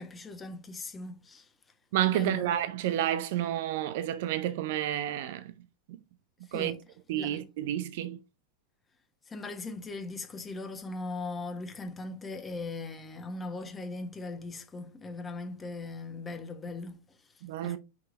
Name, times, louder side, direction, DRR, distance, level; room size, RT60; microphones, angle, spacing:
voice 1, 0.0-1.5 2.1-2.6 6.4-6.8 7.1-7.4 9.3-17.8, left 3 dB, 15° left, 1.3 m, -39 dB
voice 2, 1.9-5.5 6.5-6.7 7.1-8.2 17.4-17.8, right 12 dB, 50° right, 0.7 m, -30 dB
5.6 x 4.7 x 5.1 m
figure-of-eight pair, 90°, 0 cm